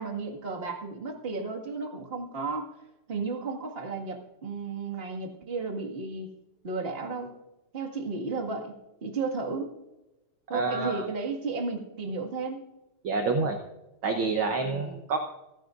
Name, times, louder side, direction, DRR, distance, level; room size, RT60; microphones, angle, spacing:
voice 1, 0.0-2.7 3.1-6.3 6.6-7.3 7.7-9.7 10.5-12.6 14.6-15.0, right 4 dB, 25° right, 1 dB, 1.5 m, -33 dB
voice 2, 10.5-11.1 13.0-13.6 14.0-15.2, right 3 dB, 65° right, 4 dB, 1.3 m, -28 dB
29.0 x 10.5 x 2.5 m, 0.98 s
omnidirectional pair, 3.5 m